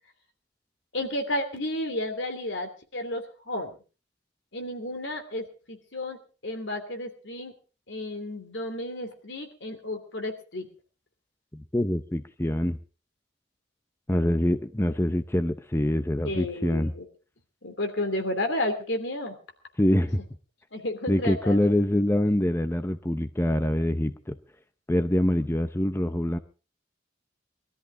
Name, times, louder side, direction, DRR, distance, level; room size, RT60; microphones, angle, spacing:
voice 1, 0.9-3.7 4.5-7.5 7.9-10.7 16.2-17.0 17.6-19.4 20.7-21.7, left 1 dB, 85° left, 6 dB, 3.0 m, -32 dB
voice 2, 11.5-12.8 14.1-16.9 19.8-20.2 21.1-24.4 24.9-26.4, left 1 dB, 15° left, 10 dB, 0.7 m, -25 dB
21.5 x 13.0 x 3.7 m, 0.35 s
head